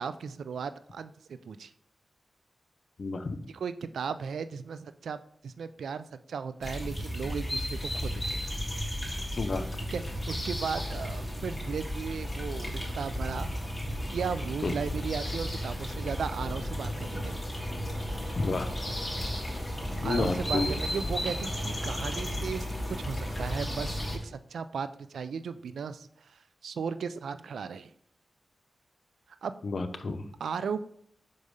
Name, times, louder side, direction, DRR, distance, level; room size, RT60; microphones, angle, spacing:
voice 1, 0.0-1.7 3.5-8.4 9.9-13.5 14.1-17.4 20.0-27.9 29.4-29.6 30.4-30.8, right 6 dB, 85° right, 12 dB, 0.3 m, -36 dB
voice 2, 3.0-3.4 9.4-9.7 14.6-14.7 18.4-18.7 20.0-20.7 29.6-30.2, left 3 dB, 65° left, 9 dB, 0.7 m, -30 dB
sound 1, 6.6-24.2, equal, 10° left, 2.6 m, -34 dB
5.3 x 4.8 x 5.2 m, 0.66 s
cardioid pair, 45°, 0 cm